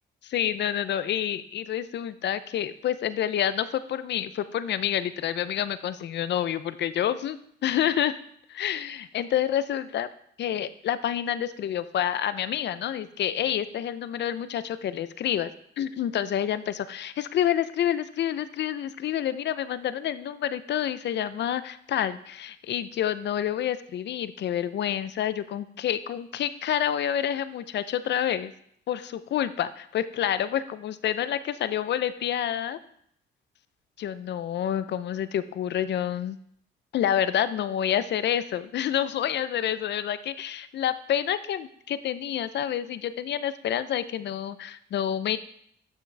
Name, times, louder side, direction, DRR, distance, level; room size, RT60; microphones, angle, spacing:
voice 1, 0.2-8.2 8.5-10.1 10.4-15.5 15.8-28.5 28.9-32.8 34.0-36.4 36.9-45.4, left 10 dB, 60° left, 14 dB, 0.6 m, -28 dB
12.0 x 5.9 x 3.3 m, 0.67 s
cardioid pair, 90°, 20 cm